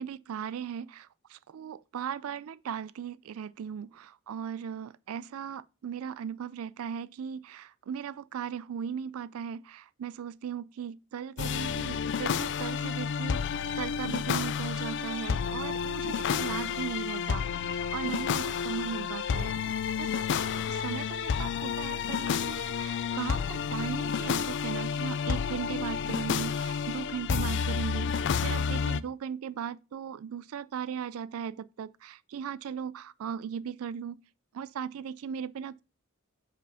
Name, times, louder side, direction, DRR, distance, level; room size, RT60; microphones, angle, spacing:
voice 1, 0.0-34.2 34.5-35.8, right 7 dB, 75° right, 0.3 m, -38 dB
sound 1, 11.4-29.0, left 7 dB, 55° left, 0.4 m, -30 dB
5.5 x 5.0 x 5.6 m
head